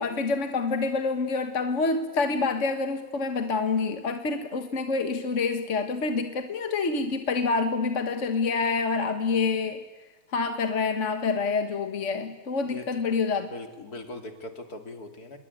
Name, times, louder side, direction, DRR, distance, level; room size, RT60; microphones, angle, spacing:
voice 1, 0.0-9.9 10.3-13.5, left 4 dB, 50° left, 1.8 m, -27 dB
voice 2, 12.6-13.0 13.5-15.4, left 2 dB, 70° left, 3.2 m, -40 dB
26.5 x 22.0 x 9.5 m
omnidirectional pair, 1.7 m